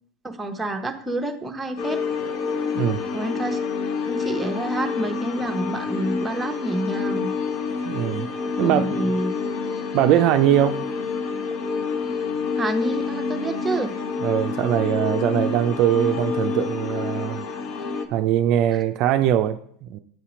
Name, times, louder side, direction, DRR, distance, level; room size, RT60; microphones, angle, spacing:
voice 1, 0.2-2.0 3.1-3.6 4.1-7.3 8.5-9.4 12.6-13.9, right 1 dB, 10° right, 4 dB, 0.8 m, -28 dB
sound 1, 1.8-18.1, left 5 dB, 50° left, 0.7 m, -28 dB
voice 2, 7.8-8.3 8.6-9.0 9.9-10.9 14.2-17.5 18.1-20.0, right 11 dB, 55° right, 8 dB, 0.3 m, -21 dB
7.7 x 2.8 x 5.0 m, 0.63 s
hypercardioid pair, 105°, 0 cm